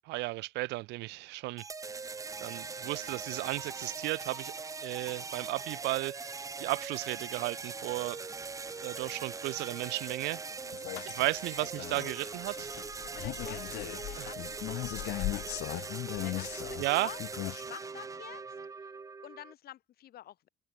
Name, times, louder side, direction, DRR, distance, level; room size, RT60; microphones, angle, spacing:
voice 1, 0.1-1.6 2.4-4.5 4.8-8.2 8.8-10.4 11.0-12.7 14.2-14.3 16.8-17.1, right 21 dB, 90° right, 1.0 m, -34 dB
sound 1, 1.6-19.5, right 4 dB, 20° right, 0.6 m, -41 dB
voice 2, 10.5-10.9 12.6-12.7 13.1-17.2 17.5-18.9 19.2-20.5, left 13 dB, 65° left, 3.6 m, -49 dB
sound 2, 10.7-17.6, left 19 dB, 85° left, 1.0 m, -38 dB
cardioid pair, 110°, 17 cm